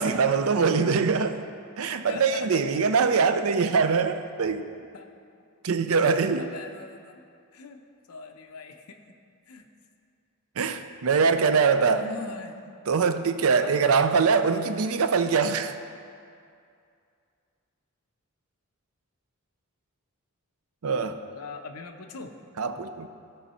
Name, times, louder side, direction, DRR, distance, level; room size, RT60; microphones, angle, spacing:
voice 1, 0.0-1.4 1.8-4.7 5.6-6.5 10.6-12.0 12.9-15.8 20.8-21.1 22.6-23.1, right 5 dB, 70° right, 10 dB, 0.5 m, -23 dB
voice 2, 2.1-2.6 3.3-3.4 4.9-5.1 6.0-7.2 7.5-9.0 9.5-9.7 11.9-12.6 13.6-14.2 20.8-22.3, left 4 dB, 80° left, 5 dB, 0.7 m, -41 dB
14.0 x 5.5 x 4.2 m, 2.4 s
head